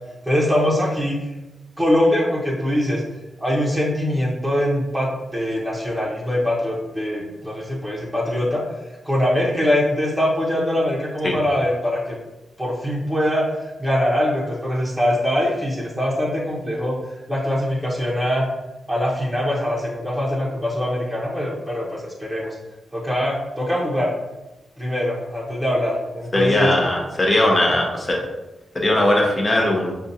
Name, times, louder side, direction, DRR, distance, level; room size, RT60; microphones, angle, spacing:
voice 1, 0.3-1.2 1.8-3.0 3.4-8.6 9.0-12.2 12.6-18.4 18.9-22.6 22.9-24.1 24.8-26.7, left 1 dB, 5° right, -5 dB, 1.0 m, -22 dB
voice 2, 26.3-28.2 28.7-29.9, left 1 dB, 25° left, -1 dB, 0.9 m, -19 dB
6.4 x 2.5 x 2.7 m, 1.0 s
wide cardioid pair, 125°, 0 cm